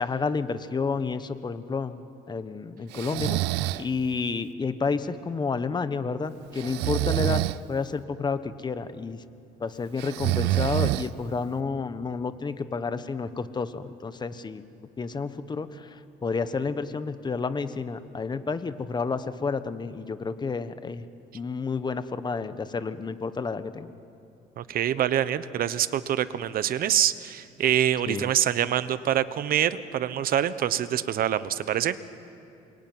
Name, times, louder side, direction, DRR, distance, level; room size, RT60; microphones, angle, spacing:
voice 1, 0.0-2.0 2.3-3.4 3.8-9.2 9.6-14.6 15.0-21.1 21.3-23.9 28.1-28.3, left 4 dB, 25° left, 12 dB, 1.3 m, -30 dB
Breathing, 2.9-3.9 6.6-7.6 10.0-11.4, right 17 dB, 85° right, 0.6 m, -26 dB
voice 2, 24.6-32.0, right 10 dB, 60° right, 14 dB, 1.1 m, -25 dB
27.5 x 22.5 x 9.5 m, 2.6 s
cardioid pair, 110°, 17 cm